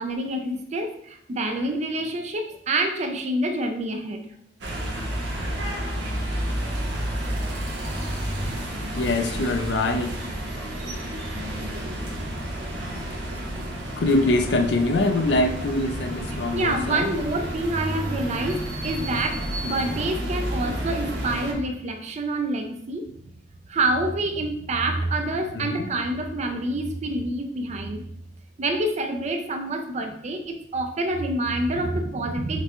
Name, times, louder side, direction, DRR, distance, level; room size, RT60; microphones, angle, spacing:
voice 1, 0.0-4.2 16.5-23.1 23.7-28.0 28.6-32.6, right 2 dB, 40° right, 5 dB, 0.4 m, -27 dB
sound 1, 4.6-21.5, right 1 dB, 80° right, 0.9 m, -30 dB
voice 2, 8.9-10.2 14.0-17.1 25.5-25.9, left 2 dB, 75° left, 6 dB, 0.5 m, -24 dB
5.9 x 2.2 x 2.9 m, 0.69 s
head